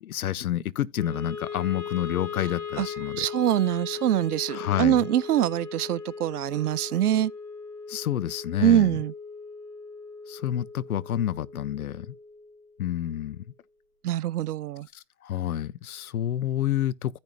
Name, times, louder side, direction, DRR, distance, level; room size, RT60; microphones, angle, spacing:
voice 1, 0.0-3.3 4.5-5.0 7.9-9.0 10.3-12.1 12.8-13.4 14.9-17.2, left 11 dB, 75° left, 0.7 m, -29 dB
Wind instrument woodwind instrument, 0.9-13.2, left 5 dB, 45° left, 4.0 m, -39 dB
voice 2, 3.2-7.3 8.6-9.1 14.0-14.9, right 11 dB, 85° right, 0.6 m, -24 dB
15.0 x 5.3 x 2.3 m
hypercardioid pair, 140°, 44 cm